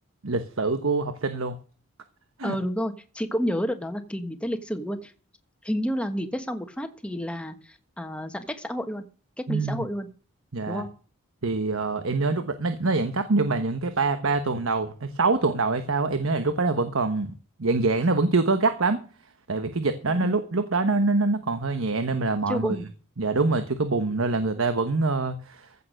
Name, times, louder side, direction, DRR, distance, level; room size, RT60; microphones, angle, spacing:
voice 1, 0.2-1.6 2.4-2.6 9.5-9.9 10.5-10.8 11.4-17.3 17.6-19.0 19.5-22.8 23.2-25.7, right 3 dB, 75° right, 9 dB, 1.1 m, -25 dB
voice 2, 2.4-5.1 5.6-9.0 9.5-10.1 10.7-10.9 20.1-20.4 22.5-22.9, equal, 5° left, 7 dB, 1.3 m, -30 dB
15.5 x 7.0 x 6.5 m, 0.39 s
head